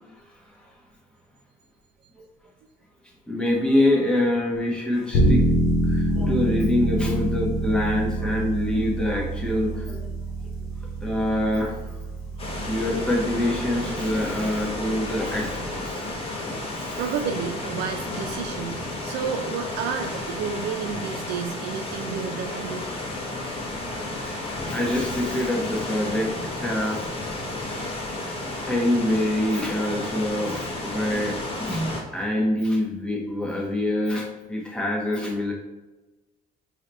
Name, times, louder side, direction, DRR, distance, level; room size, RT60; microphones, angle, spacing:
voice 1, 3.3-5.4 5.9-10.0 11.0-11.8 12.7-16.1 16.8-17.0 24.4-26.3 26.6-27.0 28.6-35.5, left 1 dB, 5° left, -3 dB, 1.2 m, -25 dB
sound 1, 5.1-15.9, right 1 dB, 75° left, 1.1 m, -27 dB
sound 2, 12.4-32.0, left 2 dB, 35° left, 1.2 m, -32 dB
voice 2, 17.0-22.9, right 7 dB, 75° right, 5 dB, 0.4 m, -31 dB
4.7 x 2.9 x 3.4 m, 1.1 s
cardioid pair, 110°, 17 cm